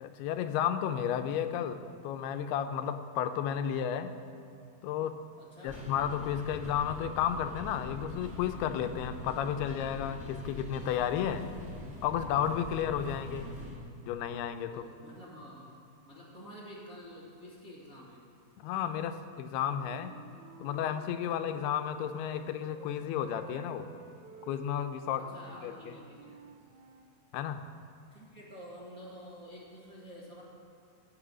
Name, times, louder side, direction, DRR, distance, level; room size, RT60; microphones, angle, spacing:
voice 1, 0.0-4.1 4.8-5.2 5.6-11.5 12.0-13.5 14.0-14.7 18.6-20.1 20.6-23.9 24.4-25.2 25.6-25.7 27.3-27.6, left 9 dB, 90° left, 9 dB, 2.7 m, -32 dB
voice 2, 5.3-5.8 14.7-15.8 16.0-18.2 25.1-26.4 28.1-30.4, equal, 35° right, -6 dB, 1.5 m, -49 dB
sound 1, 5.6-13.8, left 2 dB, 5° right, 1.0 m, -44 dB
Wind instrument woodwind instrument, 19.5-22.9 23.2-27.1, right 5 dB, 80° right, 1.6 m, -52 dB
16.0 x 8.8 x 6.2 m, 2.5 s
omnidirectional pair, 4.5 m